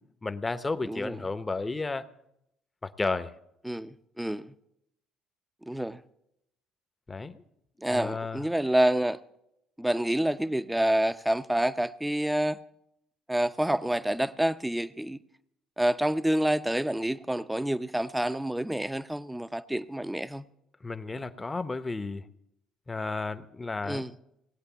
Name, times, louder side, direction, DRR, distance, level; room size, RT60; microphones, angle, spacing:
voice 1, 0.2-2.1 2.8-3.3 7.1-7.4 7.9-8.5 20.8-22.3 22.9-24.0, left 3 dB, 20° left, 0.9 m, -32 dB
voice 2, 0.9-1.2 3.6-4.5 5.7-6.0 7.8-9.2 9.8-12.6 13.3-15.2 15.8-20.4 23.9-24.1, right 1 dB, 5° right, 0.6 m, -28 dB
18.5 x 8.5 x 7.0 m
supercardioid pair, 70°, 0 cm